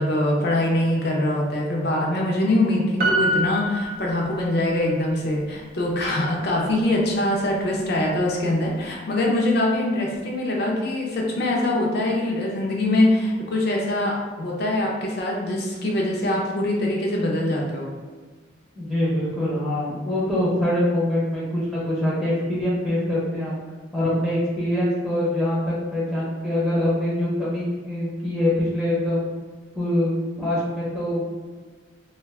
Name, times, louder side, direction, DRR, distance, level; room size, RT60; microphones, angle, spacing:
voice 1, 0.0-17.9, left 1 dB, 55° left, -2 dB, 0.5 m, -23 dB
Piano, 3.0-4.8 5.1-5.2, right 1 dB, 50° right, 0.4 m, -25 dB
voice 2, 18.7-23.6 23.9-29.3 29.7-30.1 30.4-31.2, left 1 dB, ahead, -8 dB, 0.6 m, -24 dB
2.4 x 2.3 x 3.3 m, 1.4 s
head